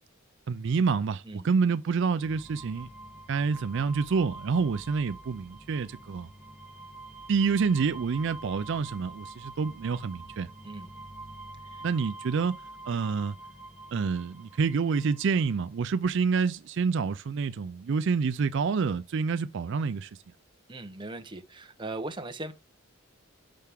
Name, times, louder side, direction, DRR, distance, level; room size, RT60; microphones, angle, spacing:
voice 1, 0.5-2.9 3.3-6.3 7.3-10.5 11.8-12.6 12.9-13.4 13.9-20.1, right 5 dB, 60° right, 0.4 m, -27 dB
sound 1, 2.2-15.6, right 2 dB, 5° right, 1.4 m, -46 dB
voice 2, 20.7-22.5, right 2 dB, 25° right, 0.8 m, -39 dB
6.3 x 5.6 x 3.5 m
head